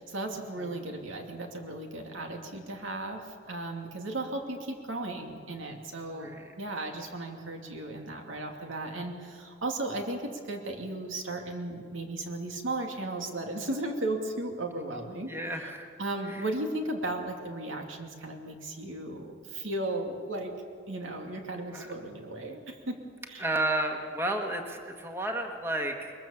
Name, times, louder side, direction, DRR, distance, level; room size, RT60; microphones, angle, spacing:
voice 1, 0.0-6.3 6.6-15.3 16.0-20.5 20.9-23.0 23.3-23.4, right 2 dB, 80° right, 3 dB, 2.6 m, -35 dB
voice 2, 6.1-6.5 8.6-9.1 15.3-15.9 16.3-16.5 21.7-21.9 23.4-26.1, right 1 dB, 10° right, 3 dB, 1.5 m, -32 dB
22.0 x 21.5 x 7.2 m, 2.2 s
head